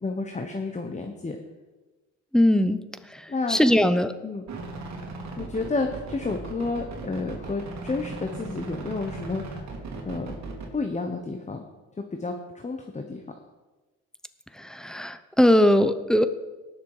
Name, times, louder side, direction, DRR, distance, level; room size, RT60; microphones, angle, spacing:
voice 1, 0.0-1.4 3.3-3.8 4.2-4.4 5.4-9.7 10.0-10.3 10.7-11.6 12.2-13.2, left 3 dB, 25° left, 4 dB, 1.2 m, -31 dB
voice 2, 2.3-2.8 3.5-4.1 14.6-16.3, left 1 dB, ahead, 11 dB, 0.8 m, -20 dB
sound 1, 4.5-10.7, right 3 dB, 65° right, 2.8 m, -37 dB
18.5 x 6.7 x 5.0 m, 1.2 s
cardioid pair, 90°, 30 cm